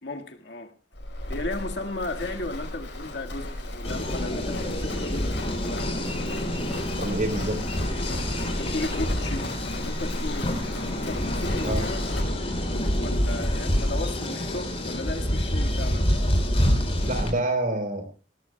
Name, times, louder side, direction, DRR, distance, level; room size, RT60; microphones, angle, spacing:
voice 1, 0.0-0.7 1.3-5.9 8.5-10.6 10.9-12.0 12.6-16.1, left 2 dB, 70° left, 1.8 m, -35 dB
Livestock farm animals working animals, 0.9-12.2, left 1 dB, 90° left, 5.0 m, -34 dB
sound 1, 3.8-17.3, equal, 35° left, 4.4 m, -27 dB
voice 2, 7.0-7.6 11.7-11.8 17.0-18.0, right 1 dB, 50° right, 3.8 m, -27 dB
21.0 x 17.5 x 2.3 m
head